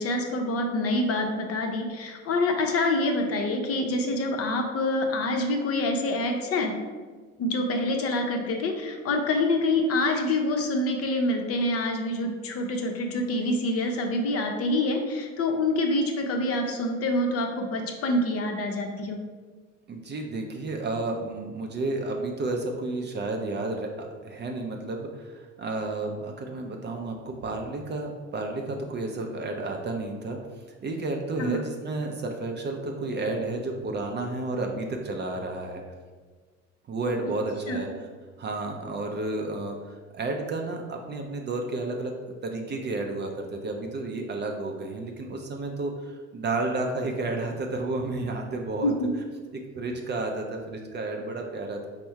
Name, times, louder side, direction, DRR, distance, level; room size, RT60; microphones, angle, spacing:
voice 1, 0.0-6.8 7.4-19.2 31.4-31.6 37.7-37.8 48.8-49.1, left 2 dB, 40° left, 3 dB, 0.6 m, -26 dB
voice 2, 19.9-30.4 30.8-35.8 36.9-37.9 38.4-42.1 42.4-48.9 49.5-51.9, right 2 dB, 30° right, 2 dB, 0.5 m, -31 dB
4.3 x 2.1 x 4.4 m, 1.4 s
hypercardioid pair, 65°, 38 cm